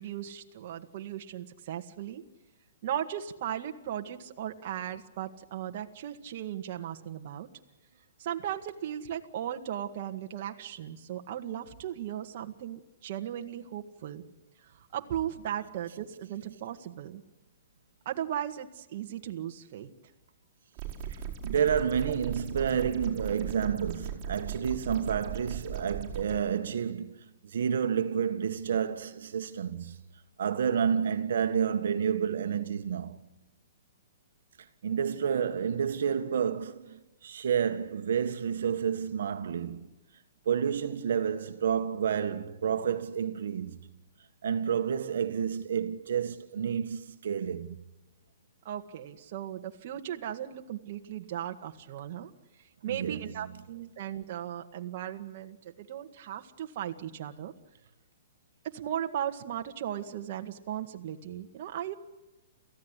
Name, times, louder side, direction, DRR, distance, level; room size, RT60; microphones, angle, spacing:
voice 1, 0.0-2.2 2.8-7.5 8.2-14.2 14.7-17.2 18.1-19.9 22.1-22.2 48.7-52.3 52.8-57.5 58.6-61.9, right 10 dB, 45° right, 1.8 m, -37 dB
sound 1, 20.8-26.4, right 7 dB, 20° right, 4.7 m, -38 dB
voice 2, 21.1-30.0 30.4-33.2 34.8-39.9 40.4-43.8 44.4-47.8 52.9-53.2, right 7 dB, 70° right, 1.6 m, -30 dB
28.5 x 15.5 x 9.9 m
hypercardioid pair, 165°, 0 cm